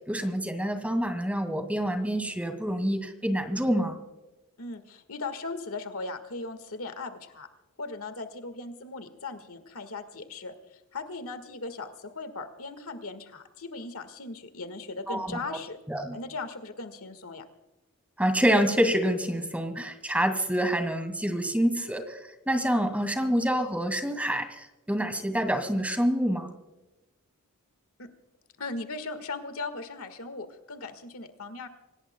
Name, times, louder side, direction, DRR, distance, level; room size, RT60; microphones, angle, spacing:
voice 1, 0.1-4.0 15.1-15.3 15.9-16.2 18.2-22.2 22.5-26.5, equal, 5° right, 7 dB, 2.0 m, -27 dB
voice 2, 4.6-7.5 7.8-15.8 16.1-17.5 28.0-28.1 28.6-31.7, left 3 dB, 70° left, 10 dB, 1.7 m, -38 dB
26.5 x 18.0 x 2.3 m, 1.0 s
head